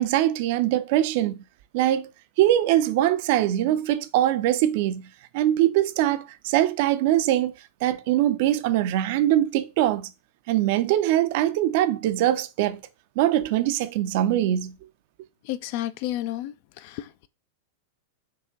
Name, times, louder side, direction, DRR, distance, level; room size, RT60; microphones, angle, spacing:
voice 1, 0.0-1.4 1.7-2.1 2.4-5.0 5.3-7.5 7.8-10.1 10.5-12.8 13.2-14.7, right 13 dB, 50° right, 0.4 m, -22 dB
voice 2, 15.4-17.3, left 14 dB, 45° left, 0.3 m, -32 dB
4.7 x 2.9 x 3.7 m
figure-of-eight pair, 90°, 0 cm